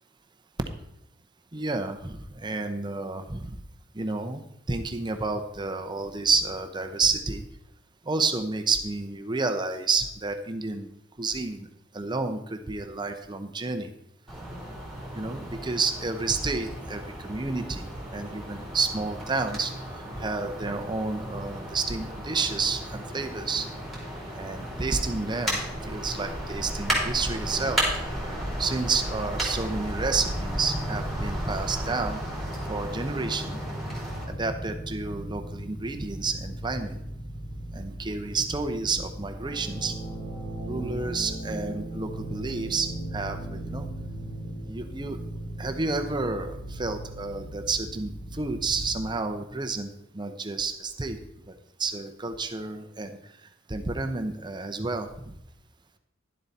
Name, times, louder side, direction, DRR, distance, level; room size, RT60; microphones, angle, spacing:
voice 1, 1.5-3.5 4.0-4.4 4.7-7.4 8.1-10.9 11.2-11.7 11.9-13.9 15.1-19.7 20.2-23.7 24.4-25.6 25.9-27.8 28.6-32.2 32.7-33.6 34.3-37.0 37.7-39.9 40.7-42.9 43.1-43.9 44.7-45.2 45.6-49.9 50.1-51.2 51.8-53.1 53.7-55.1, right 4 dB, 20° right, 6 dB, 0.7 m, -30 dB
sound 1, 14.3-34.2, equal, ahead, 3.6 m, -34 dB
sound 2, 30.2-49.1, right 1 dB, 20° left, 3.3 m, -37 dB
11.5 x 7.7 x 4.1 m, 0.77 s
head